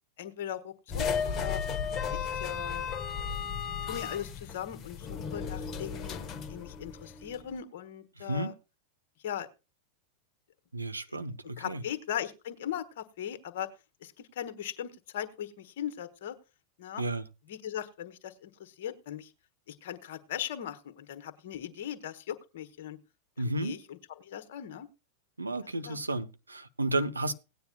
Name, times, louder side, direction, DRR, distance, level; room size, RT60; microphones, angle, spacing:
voice 1, 0.2-1.6 2.1-2.9 3.8-8.5 9.2-9.5 11.1-11.3 11.6-13.7 14.0-16.4 16.8-17.0 17.5-19.3 19.7-23.0 23.4-24.9 25.8-26.0, left 10 dB, 55° left, 1.2 m, -39 dB
sound 1, 0.9-7.4, left 6 dB, 30° left, 1.0 m, -35 dB
voice 2, 10.7-11.8 17.0-17.2 23.4-23.8 25.4-27.3, right 2 dB, 80° right, 0.8 m, -32 dB
17.5 x 9.4 x 2.3 m
figure-of-eight pair, 90°, 0 cm